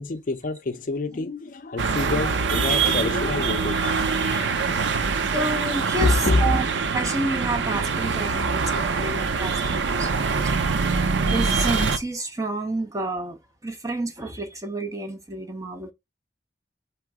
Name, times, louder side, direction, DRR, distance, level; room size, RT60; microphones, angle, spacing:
voice 1, 0.0-5.1 6.0-6.6, left 2 dB, 45° left, 0.4 m, -27 dB
sound 1, 1.8-12.0, right 5 dB, 80° right, 0.6 m, -24 dB
voice 2, 5.3-6.7 6.9-11.0 11.3-15.9, right 2 dB, 20° right, 0.6 m, -30 dB
3.8 x 3.0 x 4.6 m
head